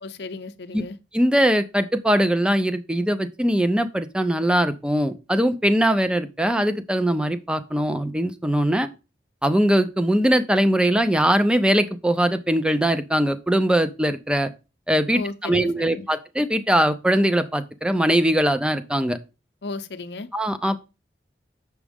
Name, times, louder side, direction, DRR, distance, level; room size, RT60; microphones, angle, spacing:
voice 1, 0.0-1.0 15.1-16.1 19.6-20.3, left 3 dB, 65° left, 0.6 m, -34 dB
voice 2, 1.1-8.9 9.4-14.5 14.9-19.2 20.3-20.8, right 1 dB, 5° right, 0.5 m, -21 dB
7.2 x 6.0 x 3.5 m
head